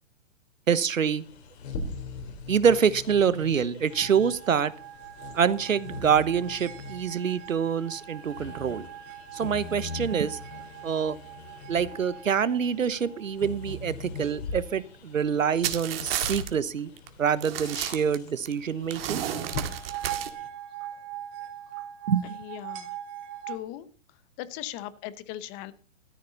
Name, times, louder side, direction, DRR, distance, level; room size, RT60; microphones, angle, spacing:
voice 1, 0.7-1.2 2.5-4.7 5.3-8.9 9.3-10.4 10.8-11.2 11.7-16.9 17.2-19.2 22.1-22.4, right 7 dB, 85° right, 17 dB, 1.2 m, -26 dB
Bird vocalization bird call bird song, 1.0-20.5, left 3 dB, 55° left, 3.9 m, -41 dB
sound 1, 3.9-13.8 19.2-23.6, right 11 dB, 30° right, 2.5 m, -42 dB
sound 2, 15.6-16.5 17.0-17.1 17.4-18.5 18.9-20.3, right 10 dB, 50° right, 2.0 m, -32 dB
voice 2, 22.2-23.0 23.5-23.9 24.4-25.7, left 13 dB, 25° left, 15 dB, 1.0 m, -38 dB
14.0 x 13.5 x 4.0 m, 0.39 s
hypercardioid pair, 135°, 39 cm